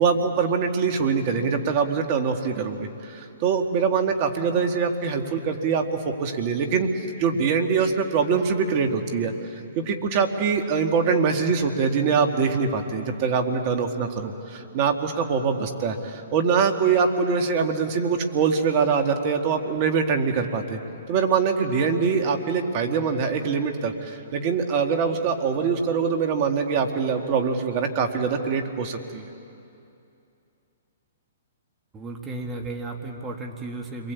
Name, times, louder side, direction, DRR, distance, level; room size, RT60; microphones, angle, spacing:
voice 1, 0.0-5.9 6.2-6.9 7.2-9.3 9.8-20.8 21.1-29.3, right 5 dB, 40° right, 5 dB, 2.5 m, -23 dB
voice 2, 31.9-34.1, right 2 dB, 20° right, 3 dB, 2.3 m, -34 dB
29.0 x 22.5 x 8.6 m, 2.7 s
hypercardioid pair, 125°, 0 cm